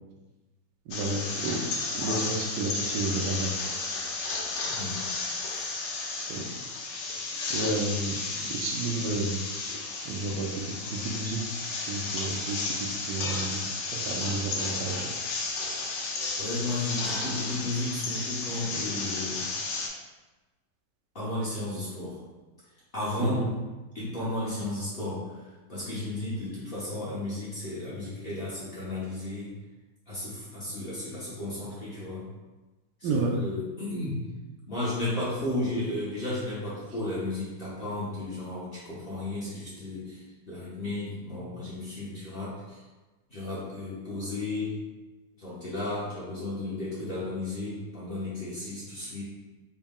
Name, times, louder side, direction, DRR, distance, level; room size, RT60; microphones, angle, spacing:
sound 1, 0.9-19.9, left 3 dB, 80° left, 1.3 m, -33 dB
voice 1, 0.9-1.6 1.9-3.5 6.2-6.4 7.1-7.2 7.5-8.1 8.5-9.8 10.0-10.6 10.9-11.4 11.8-12.6 13.0-13.6 13.9-15.1 23.2-23.5 33.0-33.3, right 3 dB, 75° right, 1 dB, 1.2 m, -31 dB
voice 2, 4.6-5.0 5.5-5.6 16.4-19.5 21.1-22.2 22.9-23.5 23.9-25.2 25.7-29.5 30.1-32.2 33.0-34.2 34.7-42.8 43.3-44.8 45.4-49.2, left 2 dB, 45° left, -9 dB, 0.8 m, -34 dB
4.1 x 2.2 x 3.6 m, 1.2 s
omnidirectional pair, 1.9 m